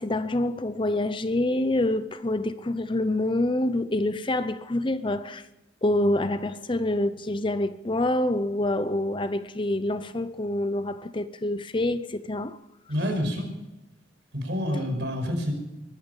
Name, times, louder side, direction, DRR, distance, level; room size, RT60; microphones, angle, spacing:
voice 1, 0.0-5.4 5.8-12.6, left 1 dB, 25° left, 0.7 m, -26 dB
voice 2, 12.9-13.5 14.3-15.5, equal, 70° right, 5.3 m, -27 dB
22.0 x 12.0 x 5.5 m
head